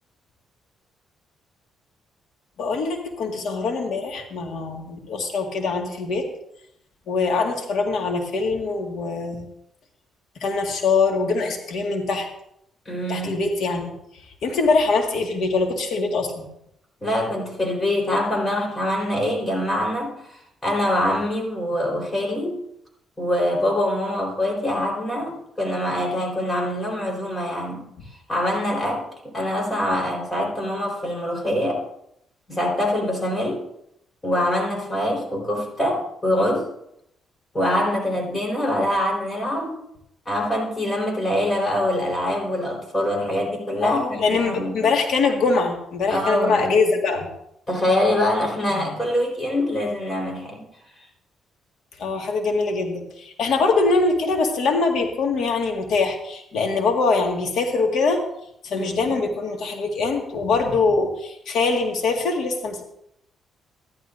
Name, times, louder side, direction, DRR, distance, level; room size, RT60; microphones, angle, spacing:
voice 1, 2.6-6.3 7.1-9.5 10.4-12.3 13.1-13.9 14.4-16.5 43.8-47.3 52.0-58.2 58.6-62.8, left 4 dB, 70° left, 3 dB, 1.8 m, -23 dB
voice 2, 12.9-13.3 17.0-22.6 23.2-27.9 28.3-31.8 32.5-33.6 34.2-36.7 37.5-39.8 40.3-44.9 46.1-46.7 47.7-50.6 58.7-59.1, left 1 dB, 25° left, 0 dB, 4.2 m, -24 dB
13.5 x 11.5 x 2.6 m, 0.77 s
cardioid pair, 90°, 0 cm